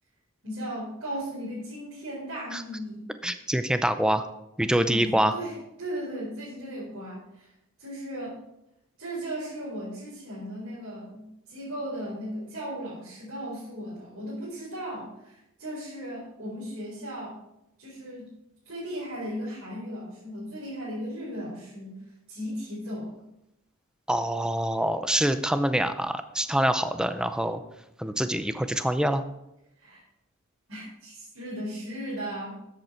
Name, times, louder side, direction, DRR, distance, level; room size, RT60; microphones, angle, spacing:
voice 1, 0.4-3.1 4.8-7.5 7.8-8.4 9.0-17.4 17.8-18.3 18.7-22.0 22.3-23.2 29.8-30.0 30.7-32.6, equal, 65° right, -8 dB, 4.4 m, -36 dB
voice 2, 3.2-4.2 4.6-5.3 24.1-27.6 28.0-29.2, right 1 dB, 5° right, 10 dB, 0.5 m, -25 dB
13.0 x 8.1 x 4.4 m, 0.87 s
head